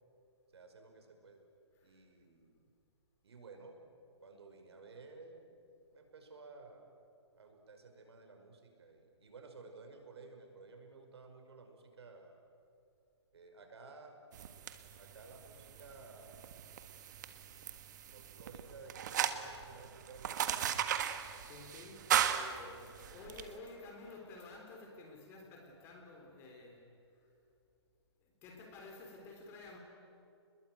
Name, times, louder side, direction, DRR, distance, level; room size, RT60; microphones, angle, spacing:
voice 1, 0.5-1.4 1.8-2.7 3.2-3.8 4.2-5.5 5.9-6.9 7.4-12.4 13.3-14.2 15.0-16.5 18.1-20.9, right 3 dB, 70° right, 4 dB, 5.7 m, -55 dB
sound 1, 14.3-23.5, right 9 dB, 40° right, 1.6 m, -37 dB
voice 2, 21.3-27.3 28.2-29.8, left 2 dB, 15° left, 2 dB, 3.7 m, -52 dB
28.5 x 21.5 x 9.3 m, 2.6 s
hypercardioid pair, 165°, 14 cm